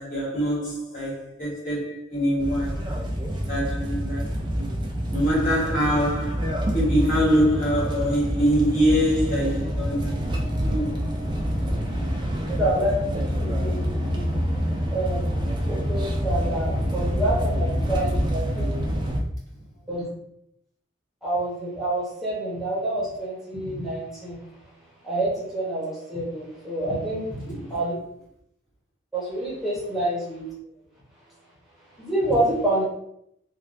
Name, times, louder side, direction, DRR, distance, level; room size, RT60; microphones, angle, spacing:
voice 1, 0.0-2.8 3.5-4.7 5.1-10.2 10.6-11.0 27.5-27.8, equal, 45° left, 1.2 m, -24 dB
sound 1, 2.4-19.2, equal, 25° right, 0.4 m, -27 dB
voice 2, 12.5-14.3 14.9-15.3 15.6-18.8 19.9-20.1 21.2-24.4 25.0-27.9 29.1-30.4 32.0-32.9, right 1 dB, ahead, 0.8 m, -27 dB
3.3 x 2.3 x 2.5 m
head